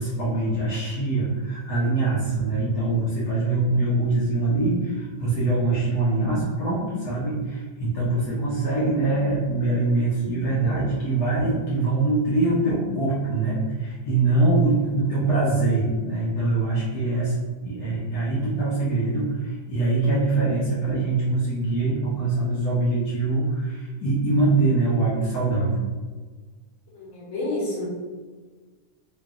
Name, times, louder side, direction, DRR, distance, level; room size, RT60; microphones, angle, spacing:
voice 1, 0.0-17.3 17.6-25.8, right 2 dB, 65° left, -9 dB, 1.4 m, -23 dB
voice 2, 26.9-27.9, left 2 dB, 45° left, -5 dB, 1.5 m, -29 dB
3.3 x 3.0 x 3.5 m, 1.4 s
omnidirectional pair, 2.0 m